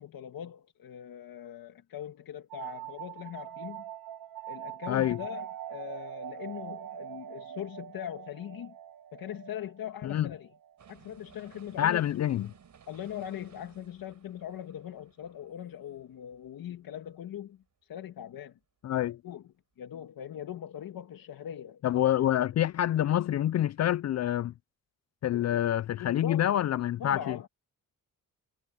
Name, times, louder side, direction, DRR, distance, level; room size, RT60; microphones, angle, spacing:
voice 1, 0.0-3.8 4.5-8.8 9.1-10.5 10.9-12.1 12.9-17.6 17.9-18.6 19.2-19.4 19.8-22.2 25.3-25.6 26.0-26.6 27.0-27.5, left 10 dB, 75° left, 2.0 m, -41 dB
sound 1, 2.5-11.9, right 12 dB, 75° right, 1.8 m, -43 dB
voice 2, 4.9-5.2 10.0-10.3 11.8-12.5 18.8-19.2 21.8-24.5 25.2-27.4, left 11 dB, 50° left, 0.4 m, -27 dB
sound 2, 10.8-16.8 17.2-17.3, right 7 dB, 55° right, 6.2 m, -59 dB
cardioid pair, 105°, 35 cm